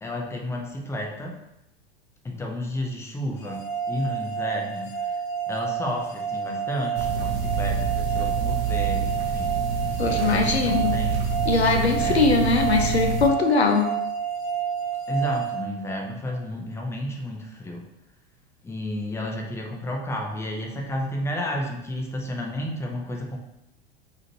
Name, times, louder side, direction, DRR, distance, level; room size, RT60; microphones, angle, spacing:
voice 1, 0.0-1.4 2.2-5.2 5.5-9.6 10.1-11.4 12.0-12.2 15.1-17.8 18.6-23.4, left 1 dB, 10° left, 1 dB, 0.6 m, -32 dB
sound 1, 3.4-16.3, right 7 dB, 45° left, 1.4 m, -29 dB
sound 2, 6.9-13.3, right 5 dB, 65° right, 0.6 m, -27 dB
voice 2, 10.0-11.0 11.5-13.9, left 4 dB, 80° left, 4 dB, 0.7 m, -21 dB
4.9 x 2.8 x 2.8 m, 0.86 s
figure-of-eight pair, 85°, 31 cm